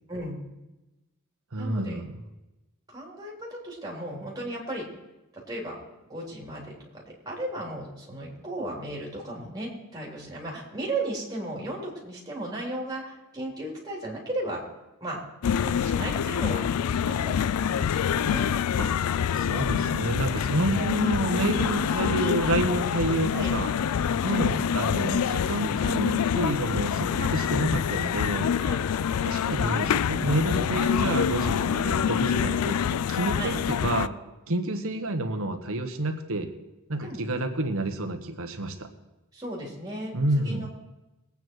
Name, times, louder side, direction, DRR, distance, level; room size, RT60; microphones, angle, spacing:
voice 1, 0.1-0.5 1.6-2.0 2.9-4.8 5.3-5.8 6.1-14.6 15.0-15.2 15.6-16.6 17.1-17.9 18.2-18.5 20.5-20.8 23.3-23.5 26.6-26.8 28.6-28.8 33.4-33.5 37.0-37.2 39.3-40.7, right 1 dB, 15° right, -3 dB, 3.4 m, -35 dB
voice 2, 1.5-2.2 18.8-18.9 19.3-23.7 24.2-28.5 29.2-34.1 34.5-36.5 36.9-38.9 40.1-40.7, right 1 dB, 70° right, 6 dB, 1.4 m, -29 dB
sound 1, 15.4-34.1, left 8 dB, 85° left, 0.4 m, -26 dB
20.5 x 9.0 x 4.6 m, 1.0 s
head